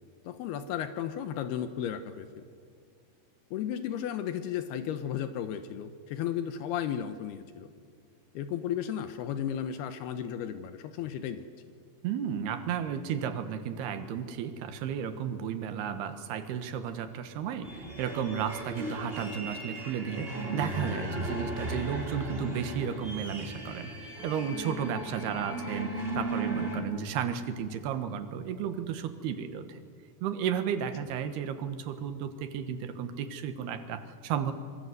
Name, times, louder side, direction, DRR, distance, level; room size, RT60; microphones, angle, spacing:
voice 1, 0.2-2.4 3.5-7.7 8.3-11.5, left 9 dB, 80° left, 9 dB, 3.0 m, -34 dB
voice 2, 12.0-29.8 30.2-34.5, right 8 dB, 80° right, 9 dB, 3.4 m, -33 dB
sound 1, 17.6-26.8, right 1 dB, 15° right, 4.2 m, -36 dB
26.5 x 23.5 x 8.1 m, 2.1 s
omnidirectional pair, 4.6 m